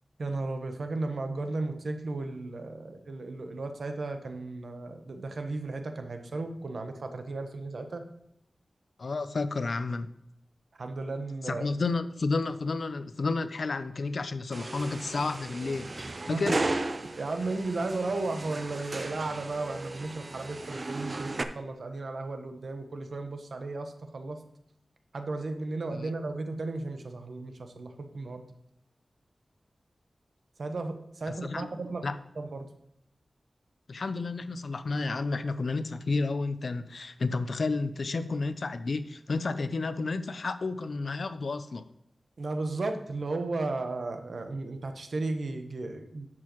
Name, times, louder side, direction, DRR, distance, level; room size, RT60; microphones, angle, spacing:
voice 1, 0.2-8.0 10.8-11.7 16.3-16.4 17.2-24.4 25.1-28.4 30.6-32.7 42.4-46.3, right 3 dB, 75° right, 6 dB, 1.1 m, -34 dB
voice 2, 9.0-10.1 11.4-16.6 25.9-26.1 31.3-31.7 32.0-32.1 33.9-41.8, left 3 dB, 70° left, 12 dB, 0.6 m, -31 dB
sound 1, 14.5-21.4, right 2 dB, 45° right, 0.6 m, -35 dB
11.0 x 7.6 x 3.1 m, 0.78 s
wide cardioid pair, 85°, 0 cm